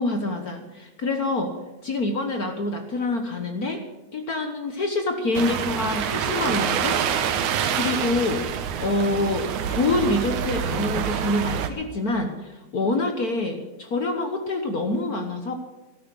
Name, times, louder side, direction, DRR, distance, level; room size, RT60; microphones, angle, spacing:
voice 1, 0.0-1.5 1.8-3.8 4.1-7.0 7.7-8.4 8.8-15.5, left 2 dB, 60° left, 5 dB, 0.9 m, -26 dB
sound 1, 5.3-11.7, right 8 dB, 80° right, 2.5 m, -26 dB
13.0 x 13.0 x 7.8 m, 1.1 s
omnidirectional pair, 3.4 m